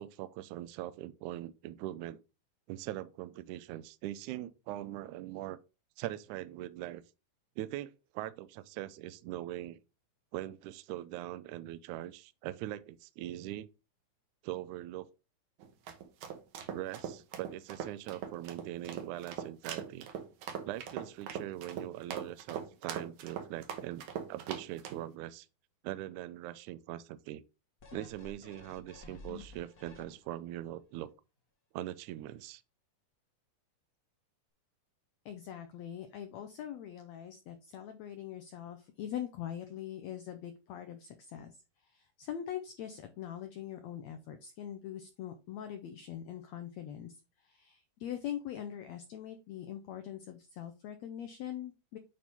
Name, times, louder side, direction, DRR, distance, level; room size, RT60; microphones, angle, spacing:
voice 1, 0.0-2.2 2.7-5.6 6.0-7.0 7.6-9.8 10.3-13.7 14.4-15.1 16.7-20.1 20.7-25.5 25.8-27.4 27.9-31.1 31.7-32.6, right 14 dB, 85° right, 1.8 m, -41 dB
sound 1, 15.6-25.0, right 8 dB, 65° right, 2.3 m, -41 dB
sound 2, 27.8-30.5 31.0-31.1, left 3 dB, 60° left, 0.8 m, -51 dB
voice 2, 35.2-41.6 41.8-52.0, left 10 dB, 85° left, 1.5 m, -42 dB
8.7 x 4.5 x 3.5 m
omnidirectional pair, 4.0 m